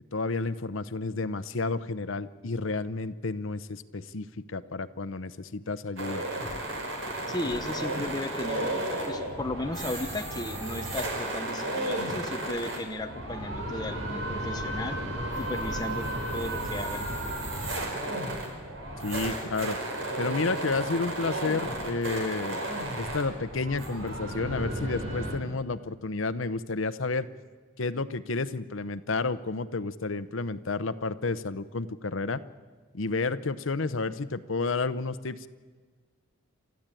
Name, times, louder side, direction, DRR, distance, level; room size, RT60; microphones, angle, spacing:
voice 1, 0.1-6.2 19.0-19.8 20.2-22.6 23.0-27.3 27.8-32.4 32.9-35.5, left 3 dB, 80° left, 14 dB, 0.8 m, -31 dB
sound 1, 6.0-25.4, right 1 dB, 70° right, 4.8 m, -33 dB
voice 2, 7.3-8.7 9.1-15.0 15.4-16.1 16.3-17.0, left 1 dB, 20° left, 6 dB, 1.0 m, -35 dB
28.5 x 13.5 x 9.1 m, 1.5 s
head